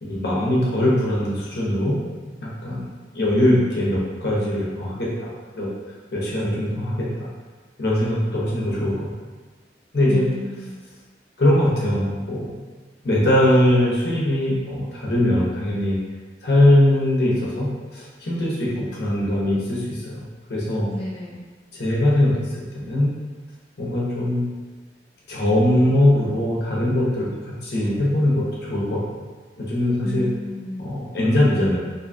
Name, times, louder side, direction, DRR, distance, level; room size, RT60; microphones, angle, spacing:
voice 1, 0.0-2.0 2.4-5.7 6.1-7.3 7.8-9.1 9.9-10.3 11.4-12.6 13.0-16.0 16.4-20.2 20.5-20.9 21.7-23.1 23.8-24.5 25.3-27.3 27.6-29.0 29.6-30.2 30.8-31.8, left 1 dB, 65° left, -6 dB, 0.7 m, -21 dB
voice 2, 10.1-10.8 20.9-21.4 30.0-30.8, left 2 dB, 30° left, -8 dB, 0.4 m, -32 dB
2.6 x 2.3 x 2.5 m, 1.4 s
head